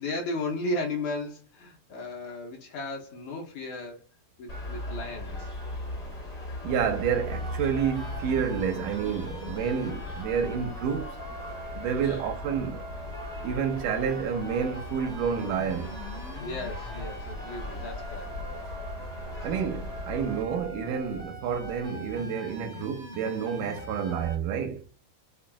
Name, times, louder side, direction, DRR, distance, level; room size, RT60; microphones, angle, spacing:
voice 1, 0.0-4.0 4.4-5.5 12.0-12.3 16.4-18.3, left 2 dB, 70° left, 2.5 m, -35 dB
sound 1, 4.5-20.4, left 2 dB, 45° left, 1.2 m, -38 dB
voice 2, 6.6-11.2 11.7-12.8 13.4-16.0 19.4-24.9, right 7 dB, 85° right, 2.2 m, -29 dB
sound 2, 6.7-24.3, equal, 65° right, 0.4 m, -42 dB
5.9 x 2.2 x 2.3 m
omnidirectional pair, 3.7 m